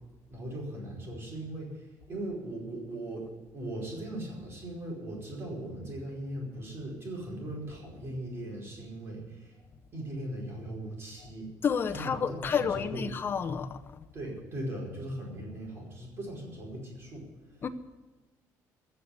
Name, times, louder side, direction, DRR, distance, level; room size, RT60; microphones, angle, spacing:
voice 1, 0.3-9.6 9.9-11.5 11.9-13.1 14.1-17.6, right 1 dB, 40° right, 4.9 m, -39 dB
voice 2, 11.6-14.0 17.6-17.7, left 6 dB, 30° left, 0.9 m, -30 dB
15.5 x 6.9 x 9.6 m
cardioid pair, 150°, 7 cm